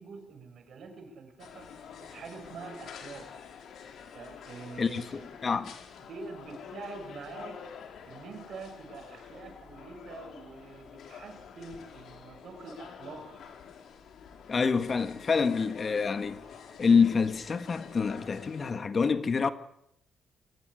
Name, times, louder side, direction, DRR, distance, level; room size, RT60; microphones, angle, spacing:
voice 1, 0.0-1.7 2.0-3.3 4.1-5.3 6.0-7.7 8.0-13.4, right 4 dB, 60° right, 6.3 m, -45 dB
sound 1, 1.4-18.7, left 7 dB, 70° left, 4.6 m, -47 dB
voice 2, 4.8-5.7 14.5-16.4 16.8-19.5, left 5 dB, 40° left, 1.7 m, -27 dB
25.0 x 15.5 x 9.8 m
cardioid pair, 90°, 0 cm